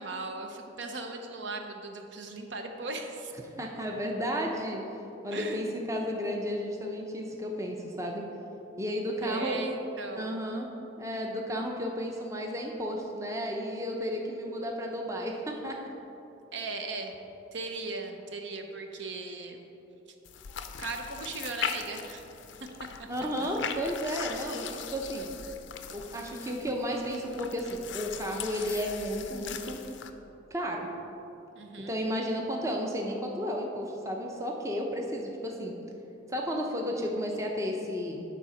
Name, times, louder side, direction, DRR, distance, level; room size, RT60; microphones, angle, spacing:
voice 1, 0.0-3.3 5.3-5.8 9.2-10.4 16.5-17.2 17.5-19.6 20.8-22.2 23.0-23.1 23.4-23.5 31.6-32.0, right 3 dB, 65° right, 4 dB, 0.7 m, -38 dB
voice 2, 3.6-4.8 5.2-8.2 8.8-9.6 10.2-10.7 11.0-15.8 20.5-20.6 23.1-25.3 25.9-29.8 30.5-30.9 31.8-35.7 36.3-38.2, equal, 15° right, 0 dB, 0.6 m, -33 dB
sound 1, 20.3-30.1, left 7 dB, 65° left, 0.5 m, -40 dB
10.0 x 4.1 x 5.7 m, 3.0 s
head